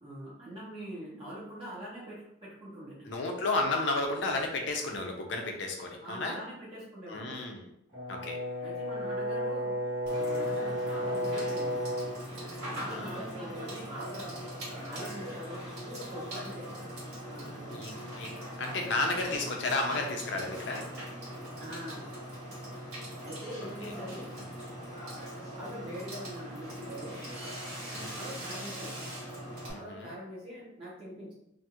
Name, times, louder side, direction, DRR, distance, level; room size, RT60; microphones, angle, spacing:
voice 1, 0.0-3.1 6.0-7.4 8.6-11.8 12.7-14.3 14.8-16.9 17.3-17.8 21.5-22.0 23.2-24.3 25.4-27.2 28.0-29.0 29.7-31.3, equal, 25° right, -8 dB, 0.7 m, -43 dB
voice 2, 3.0-6.4 7.1-7.7 8.1-8.4 12.7-13.2 17.7-20.9 23.6-23.9 24.4-24.5 27.9-28.2 29.7-30.1, left 2 dB, 65° left, 2 dB, 0.5 m, -33 dB
Brass instrument, 7.9-12.2, left 1 dB, 75° right, 1.2 m, -32 dB
Water / Water tap faucet / Sink (filling or washing), 10.0-29.7, equal, 55° right, 1.4 m, -41 dB
2.5 x 2.4 x 2.8 m, 0.79 s
head